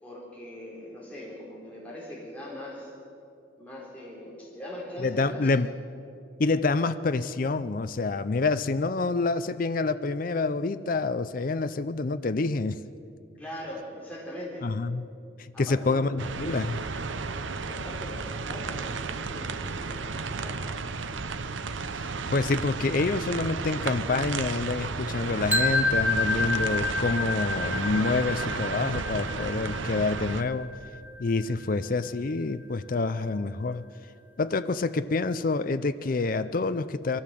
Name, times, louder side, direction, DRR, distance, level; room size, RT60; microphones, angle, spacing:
voice 1, 0.0-2.9 3.6-5.5 13.4-14.7 15.5-16.0 17.6-20.7, left 1 dB, 10° left, -5 dB, 4.2 m, -41 dB
voice 2, 5.0-5.7 6.4-12.8 14.6-15.0 15.4-16.9 21.9-30.7 31.2-33.8 34.4-37.2, left 3 dB, 45° left, 12 dB, 0.5 m, -27 dB
sound 1, 16.2-30.4, right 4 dB, 80° right, 0.8 m, -33 dB
sound 2, 25.5-31.4, left 2 dB, 10° right, 1.2 m, -29 dB
22.5 x 15.5 x 7.6 m, 2.5 s
head